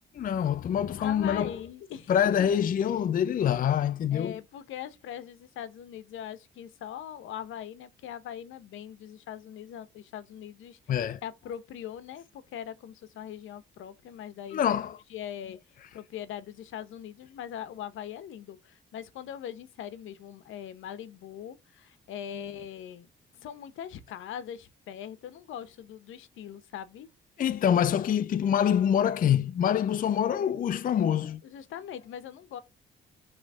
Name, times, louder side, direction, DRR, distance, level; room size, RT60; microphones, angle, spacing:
voice 1, 0.2-1.5 2.1-4.3 10.9-11.2 14.5-15.0 27.4-31.4, left 9 dB, 45° left, 0.5 m, -25 dB
voice 2, 1.0-2.5 4.1-10.8 11.2-14.7 15.1-15.6 15.9-23.1 23.3-27.1 31.4-32.6, left 9 dB, 80° left, 1.0 m, -41 dB
6.2 x 3.3 x 5.4 m
cardioid pair, 90°, 20 cm